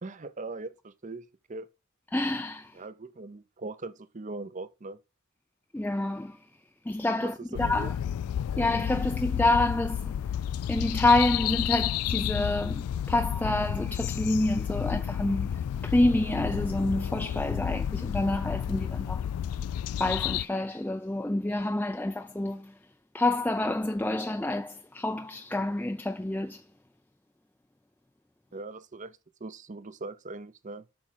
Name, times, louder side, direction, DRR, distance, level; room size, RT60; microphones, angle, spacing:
voice 1, 0.0-1.7 2.7-5.0 7.2-8.0 28.5-30.8, right 3 dB, 35° right, 0.7 m, -40 dB
voice 2, 2.1-2.7 5.7-6.4 6.9-7.9 8.6-10.1 10.7-19.3 20.0-22.7 23.1-26.6, left 2 dB, 10° left, 0.4 m, -28 dB
sound 1, 7.5-20.5, left 9 dB, 90° left, 0.3 m, -31 dB
8.6 x 6.0 x 3.8 m
head